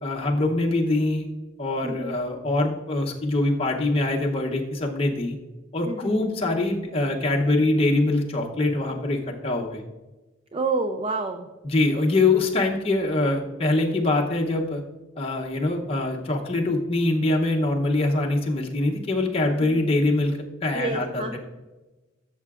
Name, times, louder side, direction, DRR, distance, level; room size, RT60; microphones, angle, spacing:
voice 1, 0.0-1.3 1.6-5.4 5.7-9.8 11.6-14.8 15.2-21.4, left 2 dB, 30° left, -1 dB, 0.8 m, -24 dB
voice 2, 1.8-2.2 5.9-6.3 10.5-11.5 19.6-19.8 20.7-21.4, right 3 dB, 30° right, 5 dB, 0.4 m, -29 dB
13.0 x 6.7 x 2.4 m, 1.1 s
head